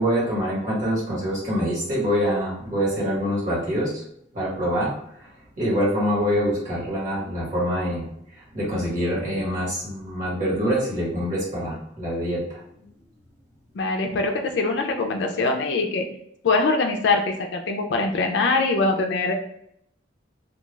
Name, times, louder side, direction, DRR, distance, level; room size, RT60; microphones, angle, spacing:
voice 1, 0.0-4.0 4.3-4.9 5.2-5.3 5.6-8.1 8.5-12.6, equal, 40° right, -6 dB, 1.1 m, -25 dB
voice 2, 13.7-16.1 16.4-19.3, left 3 dB, 65° left, 3 dB, 0.3 m, -23 dB
2.3 x 2.2 x 3.1 m, 0.71 s
head